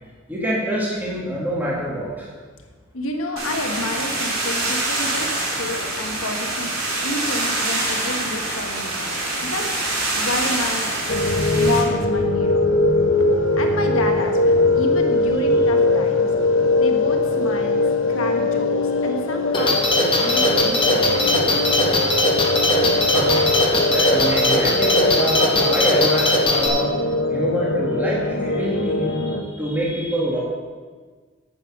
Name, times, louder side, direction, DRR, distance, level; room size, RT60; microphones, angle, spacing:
voice 1, 0.3-2.3 23.0-23.5 23.9-26.9 27.3-30.4, right 1 dB, 10° right, -5 dB, 1.8 m, -25 dB
voice 2, 2.9-9.2 9.4-9.8 10.1-10.9 11.5-12.6 13.6-16.3 16.8-17.8 18.1-19.8 20.2-21.6, left 2 dB, 85° left, 3 dB, 1.5 m, -29 dB
sound 1, 3.4-11.8, right 2 dB, 80° right, 3.2 m, -25 dB
sound 2, 11.1-29.4, left 2 dB, 65° left, 1.0 m, -21 dB
sound 3, 19.5-26.7, left 1 dB, 25° left, 1.2 m, -20 dB
9.1 x 8.0 x 6.0 m, 1.5 s
head